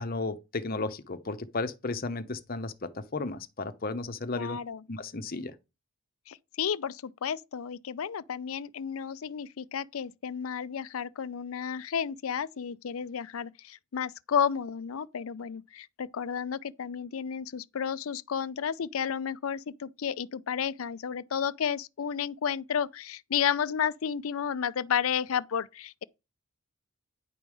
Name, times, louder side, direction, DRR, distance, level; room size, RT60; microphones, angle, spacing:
voice 1, 0.0-4.6 4.9-5.5, left 3 dB, 40° left, 0.8 m, -34 dB
voice 2, 4.3-4.8 6.3-26.0, left 7 dB, 75° left, 0.5 m, -32 dB
10.0 x 5.4 x 4.8 m
head